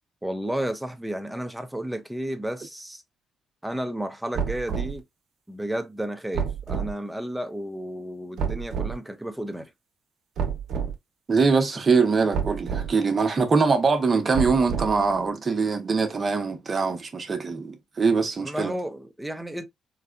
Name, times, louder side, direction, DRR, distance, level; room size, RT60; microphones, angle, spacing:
voice 1, 0.2-3.0 3.6-5.0 5.5-9.7 18.4-19.6, right 1 dB, 5° right, 0.7 m, -32 dB
sound 1, 4.3-5.0 6.3-6.9 8.4-9.0 10.4-10.9 12.3-12.9 14.3-15.1, right 7 dB, 70° right, 0.8 m, -28 dB
voice 2, 11.3-18.7, right 4 dB, 35° right, 0.9 m, -23 dB
4.0 x 2.2 x 2.5 m
cardioid pair, 90°, 0 cm